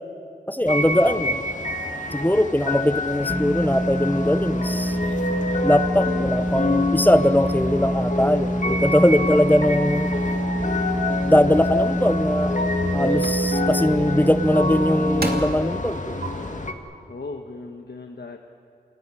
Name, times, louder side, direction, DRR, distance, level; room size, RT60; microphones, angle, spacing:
voice 1, 0.5-1.3 2.1-5.0 5.6-10.2 11.2-12.5 12.9-16.1, left 1 dB, 10° left, 12 dB, 0.8 m, -21 dB
sound 1, 0.6-16.7, left 2 dB, 45° left, 2.0 m, -27 dB
voice 2, 1.0-1.3 9.1-9.9 17.1-18.4, left 3 dB, 75° left, 3 dB, 1.3 m, -38 dB
sound 2, 3.3-15.4, equal, 10° right, 1.5 m, -26 dB
sound 3, 11.9-12.0 12.5-12.8 13.2-13.4 14.6-14.7 15.2-15.6 16.2-16.3, right 2 dB, 65° right, 2.6 m, -30 dB
28.0 x 17.0 x 9.8 m, 2.6 s
wide cardioid pair, 70°, 17 cm